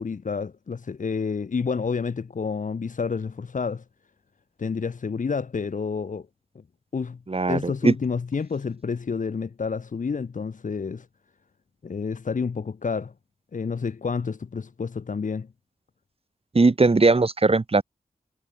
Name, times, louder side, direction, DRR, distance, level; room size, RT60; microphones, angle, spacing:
voice 1, 0.0-3.8 4.6-6.3 6.9-7.2 7.5-11.1 11.8-13.1 13.5-15.5, left 5 dB, 60° left, 0.8 m, -29 dB
voice 2, 7.3-7.9 16.5-17.8, right 3 dB, 40° right, 1.3 m, -19 dB
cardioid pair, 40°, 15 cm